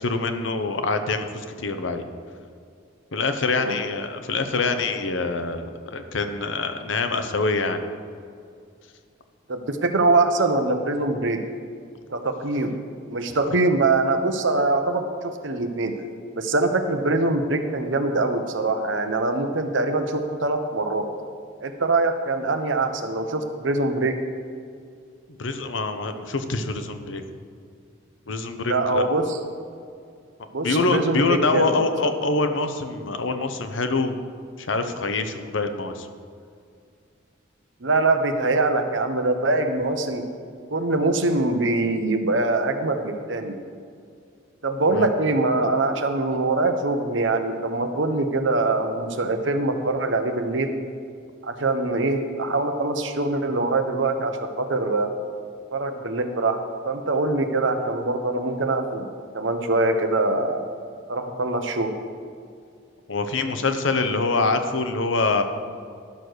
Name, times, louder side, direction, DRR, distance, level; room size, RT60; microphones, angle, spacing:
voice 1, 0.0-2.0 3.1-7.8 25.3-27.2 28.3-29.1 30.6-34.2 34.6-36.1 44.9-45.1 63.1-65.4, left 3 dB, 70° left, 8 dB, 0.8 m, -25 dB
voice 2, 9.5-11.4 12.1-12.7 13.1-15.9 16.3-21.1 21.6-24.2 28.7-29.4 30.5-31.8 37.8-40.2 40.7-43.6 44.6-50.7 51.4-55.1 55.7-56.6 56.8-59.1 59.3-60.6 61.1-61.9, right 2 dB, 70° right, 6 dB, 1.0 m, -23 dB
12.0 x 6.7 x 6.3 m, 2.3 s
head